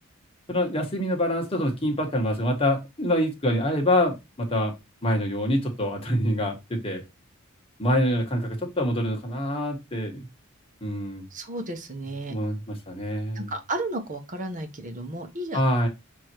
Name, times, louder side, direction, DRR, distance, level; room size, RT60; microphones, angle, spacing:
voice 1, 0.5-4.7 5.0-7.0 7.8-10.3 10.8-11.3 12.3-13.5 15.5-15.9, equal, 25° left, 1 dB, 1.7 m, -25 dB
voice 2, 11.3-12.4 13.3-15.6, right 2 dB, 40° right, 6 dB, 1.2 m, -33 dB
6.9 x 3.1 x 4.6 m, 0.23 s
head